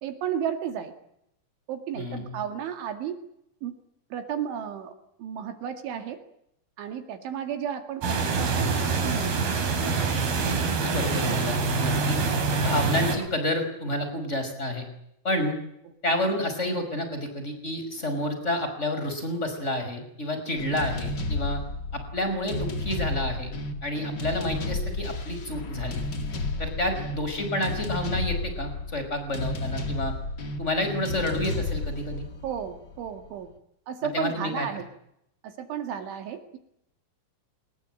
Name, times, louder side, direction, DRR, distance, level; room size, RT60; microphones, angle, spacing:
voice 1, 0.0-0.9 1.7-3.2 3.6-3.7 4.1-4.9 5.2-6.2 6.8-8.7 9.0-9.3 32.4-33.5 33.9-34.9 35.4-36.6, right 9 dB, 70° right, 8 dB, 4.4 m, -33 dB
voice 2, 1.9-2.4 10.8-12.2 12.6-14.9 15.2-15.5 16.0-21.6 22.1-23.5 23.8-26.0 26.6-30.1 30.6-32.3 34.0-34.7, left 1 dB, 15° left, 7 dB, 5.3 m, -29 dB
sound 1, 8.0-13.2, right 4 dB, 50° right, 5.6 m, -25 dB
sound 2, 20.5-33.3, left 2 dB, 50° left, 1.3 m, -32 dB
26.0 x 21.0 x 8.9 m, 0.77 s
omnidirectional pair, 5.9 m